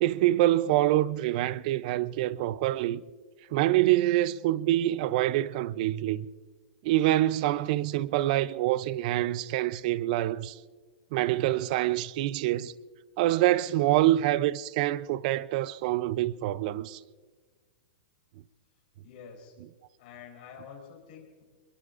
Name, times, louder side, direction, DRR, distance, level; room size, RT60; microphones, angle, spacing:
voice 1, 0.0-3.0 3.5-6.3 6.8-10.6 11.1-12.7 13.2-17.0, right 15 dB, 50° right, 0.6 m, -26 dB
voice 2, 19.0-19.6 20.0-21.4, left 6 dB, 60° left, 3.8 m, -48 dB
23.5 x 22.0 x 2.6 m
supercardioid pair, 150°, 6 cm